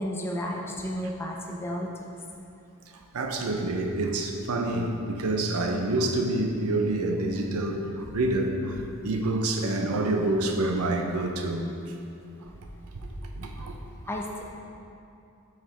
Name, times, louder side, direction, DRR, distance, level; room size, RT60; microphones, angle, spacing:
voice 1, 0.0-2.1 8.8-8.9 14.1-14.4, equal, 10° left, 0 dB, 0.4 m, -32 dB
voice 2, 3.1-11.7 12.4-12.5 13.0-13.1 13.3-13.7, right 2 dB, 85° right, 3 dB, 0.6 m, -27 dB
6.9 x 4.9 x 3.2 m, 2.7 s
head